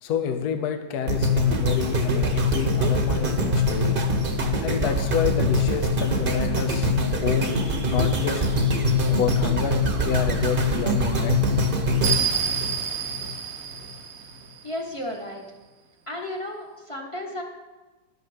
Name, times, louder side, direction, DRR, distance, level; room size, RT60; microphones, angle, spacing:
voice 1, 0.0-4.0 4.6-6.9 7.2-7.6 7.8-8.4 9.1-11.4, left 7 dB, 65° left, 6 dB, 1.3 m, -28 dB
sound 1, 1.1-13.3 13.8-13.9, left 1 dB, 35° right, 1.2 m, -23 dB
sound 2, 7.4-14.9, right 7 dB, 50° right, 0.9 m, -32 dB
voice 2, 14.6-15.5 16.1-17.4, left 1 dB, 20° left, 0 dB, 1.4 m, -33 dB
12.0 x 6.8 x 6.4 m, 1.2 s
omnidirectional pair, 1.9 m